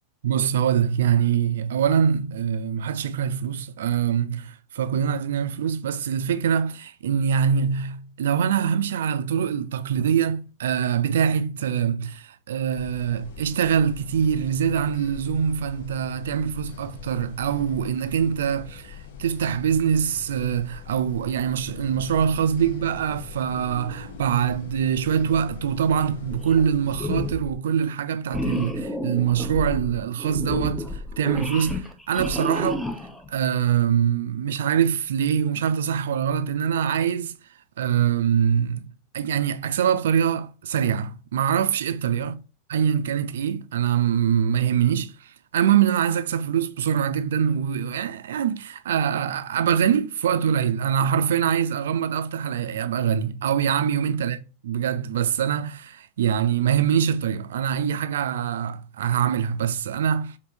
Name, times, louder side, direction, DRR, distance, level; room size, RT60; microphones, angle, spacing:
voice 1, 0.2-32.8 33.3-37.3 37.8-38.9 39.1-42.4 42.7-54.4 54.6-60.4, right 8 dB, 60° right, 0.3 m, -24 dB
sound 1, 12.7-27.3, left 7 dB, 55° left, 0.6 m, -42 dB
sound 2, 26.3-26.7 26.9-27.6 28.3-33.3, left 1 dB, 5° left, 0.5 m, -31 dB
4.6 x 2.6 x 2.6 m
figure-of-eight pair, 90°, 0 cm